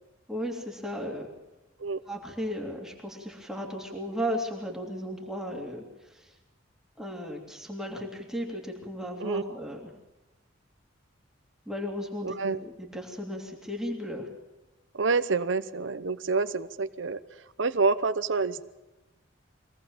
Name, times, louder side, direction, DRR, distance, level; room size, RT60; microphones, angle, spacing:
voice 1, 0.3-1.3 2.1-5.8 6.1-6.3 7.0-9.9 11.7-14.3, equal, ahead, -1 dB, 3.0 m, -35 dB
voice 2, 12.2-12.6 14.9-17.2 17.6-18.6, right 4 dB, 70° right, 11 dB, 0.8 m, -27 dB
24.0 x 18.0 x 7.2 m, 1.0 s
head